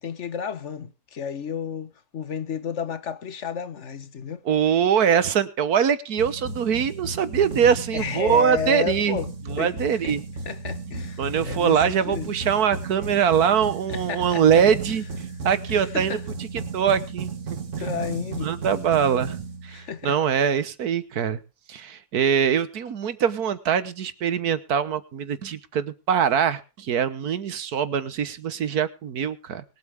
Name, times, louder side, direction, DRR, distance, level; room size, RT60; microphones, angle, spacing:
voice 1, 0.0-4.4 7.9-9.7 10.0-10.2 10.4-12.3 13.9-14.6 15.7-16.2 17.8-18.5 19.7-20.1, left 7 dB, 50° left, 1.3 m, -32 dB
voice 2, 4.4-9.2 9.5-10.2 11.2-15.1 15.4-16.5 16.7-17.3 18.4-19.4 19.6-21.4 21.7-29.6, right 8 dB, 70° right, 1.6 m, -23 dB
sound 1, 6.2-20.1, right 4 dB, 50° right, 1.8 m, -34 dB
24.0 x 8.2 x 3.5 m
omnidirectional pair, 1.7 m